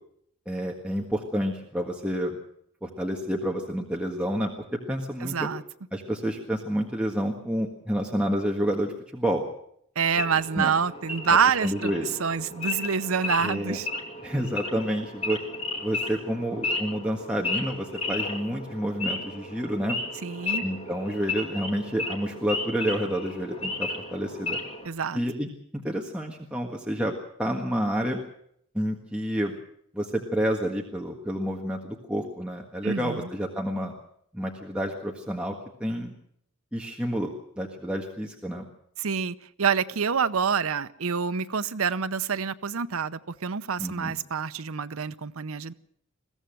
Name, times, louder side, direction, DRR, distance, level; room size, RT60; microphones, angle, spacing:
voice 1, 0.5-2.4 2.8-4.5 4.9-5.5 5.9-9.4 10.5-10.7 11.6-12.1 13.4-13.8 14.2-15.4 15.8-20.0 20.6-24.6 25.1-27.1 27.4-28.2 28.7-29.6 29.9-33.9 34.3-35.5 35.8-36.1 36.7-37.3 37.6-38.7 43.8-44.1, equal, 5° right, 0 dB, 1.7 m, -29 dB
voice 2, 5.2-5.6 10.0-13.9 20.2-20.7 24.8-25.2 32.8-33.3 39.0-45.7, right 6 dB, 85° right, 13 dB, 0.8 m, -27 dB
Wild animals / Idling, 10.1-24.9, left 3 dB, 30° left, 2.4 m, -34 dB
22.0 x 15.5 x 7.8 m, 0.68 s
head